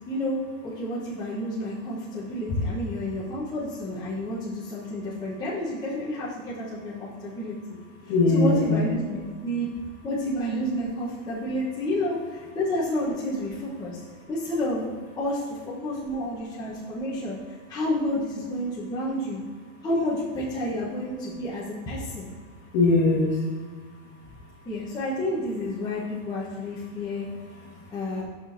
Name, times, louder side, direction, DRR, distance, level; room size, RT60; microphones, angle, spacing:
voice 1, 0.1-0.4 0.6-7.8 8.3-9.7 10.0-14.0 14.3-14.9 15.2-15.6 15.8-17.4 17.7-19.4 19.8-22.3 24.6-27.3 27.9-28.2, left 1 dB, 10° left, -8 dB, 0.9 m, -30 dB
voice 2, 8.1-8.8 22.7-23.5 26.9-27.0 27.4-28.1, left 3 dB, 40° left, -1 dB, 1.4 m, -23 dB
9.8 x 6.0 x 2.6 m, 1.5 s
supercardioid pair, 155°, 41 cm